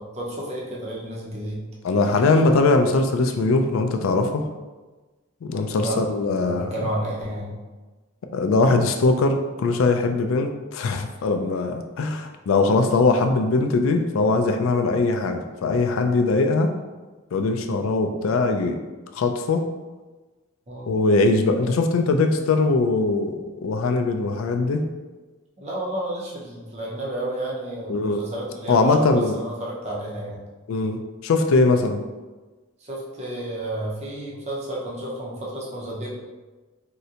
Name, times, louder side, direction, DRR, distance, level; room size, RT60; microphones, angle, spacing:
voice 1, 0.0-1.7 5.7-6.0 6.5-7.6 20.7-20.9 25.6-30.4 32.8-36.1, right 1 dB, 30° right, -4 dB, 0.6 m, -31 dB
voice 2, 1.8-4.4 5.4-6.7 8.3-16.7 17.3-18.8 19.1-19.6 20.9-24.8 27.9-28.3 28.7-29.4 30.7-32.0, left 3 dB, 80° left, 6 dB, 0.3 m, -21 dB
3.7 x 2.1 x 2.7 m, 1.2 s
head